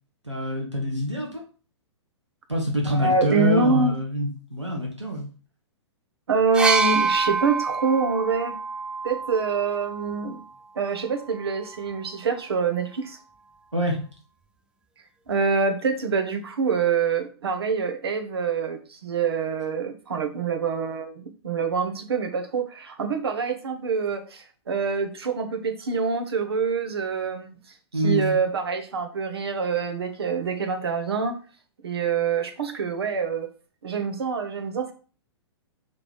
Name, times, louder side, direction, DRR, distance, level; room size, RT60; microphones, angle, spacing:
voice 1, 0.2-1.4 2.5-5.3 13.7-14.0 27.9-28.4, equal, 90° right, -1 dB, 1.9 m, -25 dB
voice 2, 2.8-3.9 6.3-8.5 9.0-10.4 10.7-13.2 15.3-27.5 28.0-31.4 31.8-33.5 33.8-34.9, right 5 dB, 60° right, 6 dB, 1.3 m, -25 dB
sound 1, 6.5-10.4 11.4-11.5, right 4 dB, 5° right, 0.5 m, -26 dB
5.4 x 3.9 x 4.7 m, 0.38 s
figure-of-eight pair, 110°, 15 cm